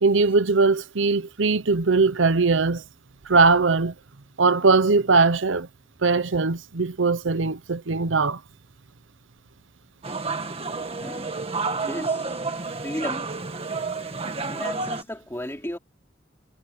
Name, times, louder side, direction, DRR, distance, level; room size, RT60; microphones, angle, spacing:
voice 1, 0.0-2.8 3.3-3.9 4.4-5.7 6.0-8.4, right 4 dB, 75° right, 0.9 m, -20 dB
sound 1, 10.0-15.0, right 4 dB, 30° right, 2.0 m, -30 dB
voice 2, 11.0-11.3 11.7-12.4 12.8-13.3 14.5-15.8, left 1 dB, 15° left, 3.1 m, -34 dB
head